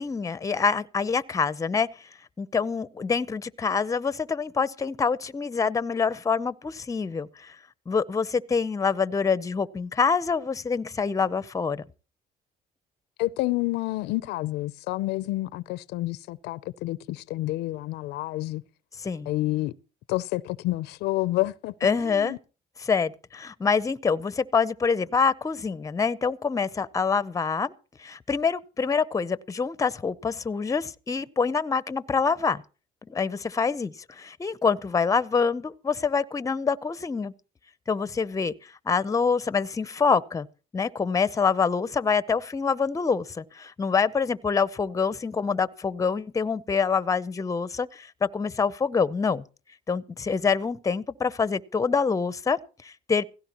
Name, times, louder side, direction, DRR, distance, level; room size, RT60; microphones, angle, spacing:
voice 1, 0.0-1.9 2.4-7.5 7.9-11.8 19.0-19.3 21.8-22.4 22.8-27.7 28.0-32.6 33.1-37.3 37.9-38.5 38.9-40.5 40.7-49.4 49.9-53.3, left 5 dB, 20° left, 0.7 m, -26 dB
voice 2, 13.2-18.6 19.3-19.7 20.1-22.4, left 18 dB, 85° left, 0.6 m, -29 dB
17.0 x 16.0 x 3.0 m
cardioid pair, 110°, 17 cm